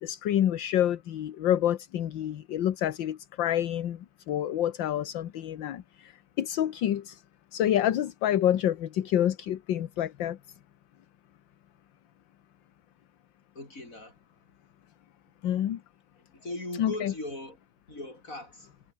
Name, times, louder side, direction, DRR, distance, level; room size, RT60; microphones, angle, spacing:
voice 1, 0.0-6.1 6.4-7.2 7.5-10.4 15.4-15.8 16.8-17.1, left 11 dB, 65° left, 1.7 m, -28 dB
voice 2, 13.5-14.2 16.3-17.6 17.9-18.7, left 2 dB, 35° left, 7.9 m, -39 dB
omnidirectional pair, 2.3 m